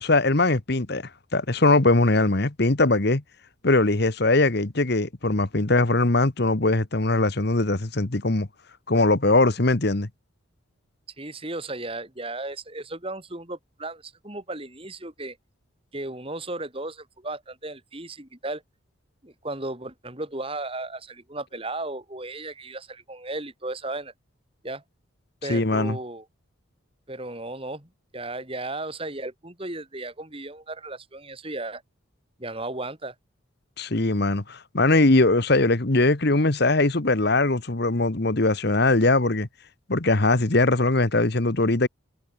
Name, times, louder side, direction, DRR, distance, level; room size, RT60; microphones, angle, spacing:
voice 1, 0.0-3.2 3.6-8.5 8.9-10.1 25.5-26.0 33.8-39.5 39.9-41.9, left 2 dB, 50° left, 1.3 m, -21 dB
voice 2, 11.2-15.4 15.9-18.6 19.2-24.1 24.6-24.8 25.4-26.2 27.1-31.8 32.4-33.1, right 2 dB, 25° right, 3.0 m, -35 dB
head